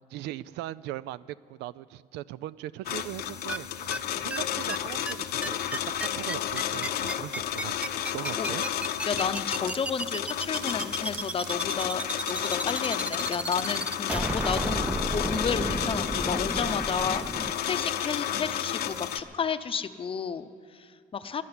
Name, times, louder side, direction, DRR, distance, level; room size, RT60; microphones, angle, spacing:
voice 1, 0.1-8.6, right 14 dB, 90° right, 18 dB, 0.4 m, -39 dB
sound 1, 2.8-19.2, left 10 dB, 65° left, 0.8 m, -32 dB
sound 2, 3.5-3.6 3.9-4.0 4.3-4.4 4.7-4.8 5.1-5.2 5.4-17.5, right 1 dB, 5° right, 0.5 m, -32 dB
voice 2, 9.1-14.8 15.1-21.4, left 6 dB, 30° left, 11 dB, 0.7 m, -32 dB
sound 3, 9.3-14.5, right 7 dB, 55° right, 0.9 m, -47 dB
12.5 x 11.0 x 9.8 m, 2.3 s
cardioid pair, 110°, 17 cm